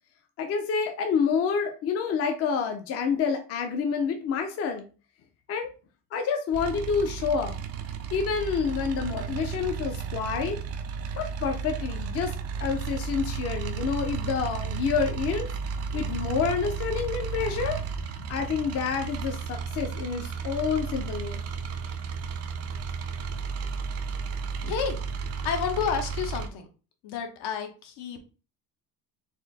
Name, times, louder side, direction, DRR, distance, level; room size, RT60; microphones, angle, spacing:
voice 1, 0.4-4.9 5.5-5.7 6.1-7.6 8.1-10.6 11.2-12.3 12.6-15.5 15.9-17.8 18.3-21.4, left 6 dB, 40° left, 5 dB, 0.5 m, -28 dB
sound 1, 6.5-26.5, right 6 dB, 40° right, 0.4 m, -33 dB
voice 2, 24.6-25.0 25.4-26.7 27.0-28.2, left 7 dB, 75° left, 5 dB, 1.1 m, -30 dB
4.2 x 2.5 x 3.9 m, 0.35 s
cardioid pair, 175°, 40 cm